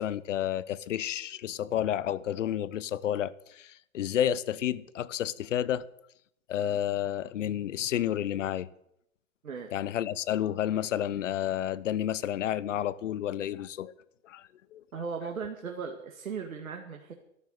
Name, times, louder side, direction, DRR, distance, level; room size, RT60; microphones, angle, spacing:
voice 1, 0.0-5.8 6.5-8.7 9.7-13.9 14.2-14.8, left 11 dB, 65° left, 1.0 m, -30 dB
voice 2, 14.9-17.1, right 5 dB, 90° right, 2.2 m, -37 dB
13.0 x 12.0 x 7.8 m
hypercardioid pair, 135°, 39 cm